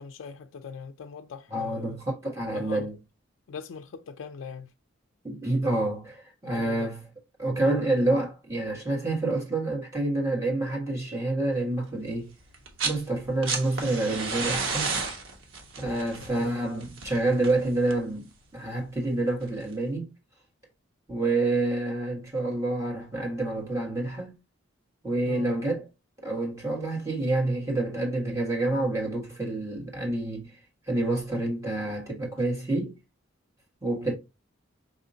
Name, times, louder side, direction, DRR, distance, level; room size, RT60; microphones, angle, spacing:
voice 1, 0.0-2.0 2.5-2.9 3.5-4.7 6.5-6.9 16.3-16.5 25.2-25.5 34.0-34.1, left 6 dB, 75° left, 0.4 m, -41 dB
voice 2, 1.5-2.9 5.2-7.0 7.4-12.3 12.8-14.9 15.8-20.1 21.1-24.4 25.0-25.9 26.2-30.6 30.9-33.0 33.8-34.1, right 2 dB, 15° right, 1.5 m, -28 dB
sound 1, 12.5-13.0 13.3-18.1 19.4-19.5, right 4 dB, 80° right, 1.0 m, -32 dB
5.2 x 2.8 x 2.6 m
head